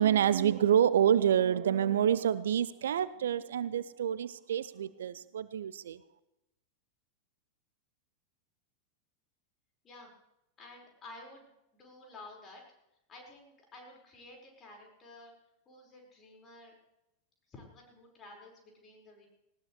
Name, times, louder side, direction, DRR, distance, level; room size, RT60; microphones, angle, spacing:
voice 1, 0.0-6.0, right 9 dB, 65° right, 17 dB, 0.5 m, -27 dB
voice 2, 10.6-12.6 13.1-15.3 15.6-16.7 17.5-19.3, left 2 dB, 25° left, 0 dB, 5.2 m, -52 dB
19.0 x 17.5 x 3.3 m, 0.88 s
figure-of-eight pair, 90°, 0 cm